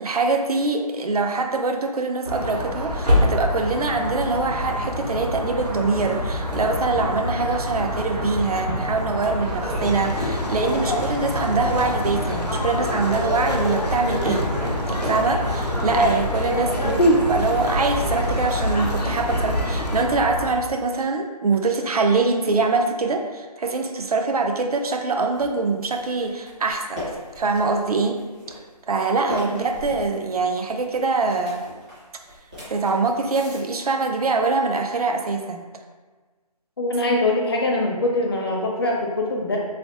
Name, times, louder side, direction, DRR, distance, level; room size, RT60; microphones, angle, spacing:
voice 1, 0.0-14.5 14.9-27.0 27.4-28.2 28.9-31.7 32.7-35.7, right 3 dB, 65° right, 4 dB, 0.5 m, -24 dB
sound 1, 2.2-20.5, left 1 dB, 85° right, 1.1 m, -27 dB
sound 2, 9.8-20.1, equal, 85° left, 0.6 m, -26 dB
sound 3, 25.3-33.6, left 1 dB, 10° right, 0.5 m, -39 dB
voice 2, 36.8-39.6, left 2 dB, 40° left, -1 dB, 0.5 m, -23 dB
3.3 x 2.6 x 2.9 m, 1.3 s
figure-of-eight pair, 160°, 20 cm